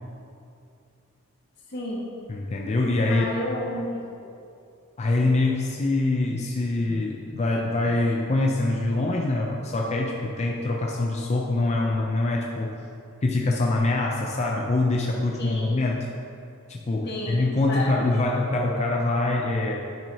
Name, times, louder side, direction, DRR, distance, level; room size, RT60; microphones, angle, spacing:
voice 1, 1.7-2.1 3.1-4.3 15.4-15.9 17.0-18.2, left 1 dB, 50° left, -5 dB, 1.6 m, -32 dB
voice 2, 2.3-3.3 5.0-12.8 13.2-16.1 16.7-19.8, left 2 dB, 30° left, -1 dB, 0.5 m, -24 dB
10.0 x 6.0 x 2.8 m, 2.5 s
head